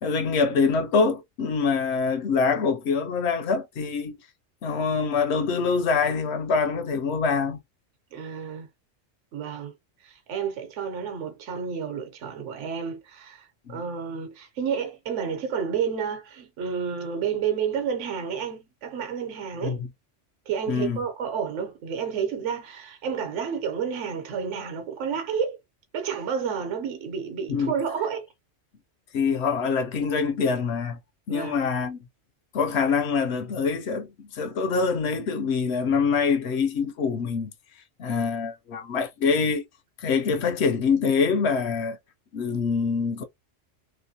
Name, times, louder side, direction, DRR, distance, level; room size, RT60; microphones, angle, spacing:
voice 1, 0.0-4.1 4.6-7.6 13.7-13.8 19.6-19.8 20.7-21.0 27.5-27.7 29.1-31.0 31.3-32.0 32.5-37.5 38.0-39.6 40.0-42.0 42.3-43.2, left 5 dB, 65° left, 0.8 m, -25 dB
voice 2, 8.1-8.7 9.3-9.7 10.0-19.8 20.5-25.6 25.9-28.3 31.3-31.6, right 7 dB, 75° right, 1.1 m, -30 dB
3.0 x 2.9 x 2.7 m
omnidirectional pair, 1.3 m